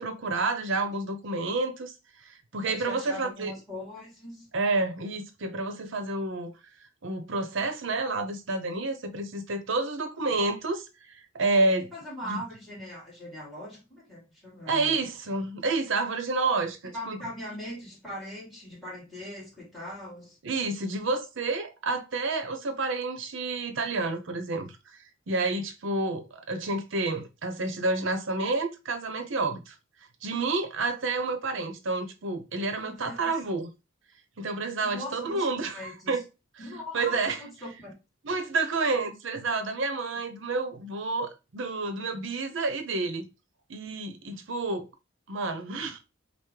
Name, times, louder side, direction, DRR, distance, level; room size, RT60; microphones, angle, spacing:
voice 1, 0.0-1.9 2.2-3.5 4.5-6.5 7.0-11.9 12.2-12.4 14.7-17.2 20.4-29.7 30.2-33.7 34.4-36.2 36.9-37.4 38.2-43.3 43.7-44.9 45.3-46.0, right 3 dB, 65° right, 0.7 m, -29 dB
voice 2, 2.6-4.5 11.9-15.1 16.9-20.4 32.7-33.3 34.8-35.4 35.7-36.2 36.6-37.9, equal, ahead, 1.7 m, -40 dB
5.6 x 2.1 x 3.1 m
head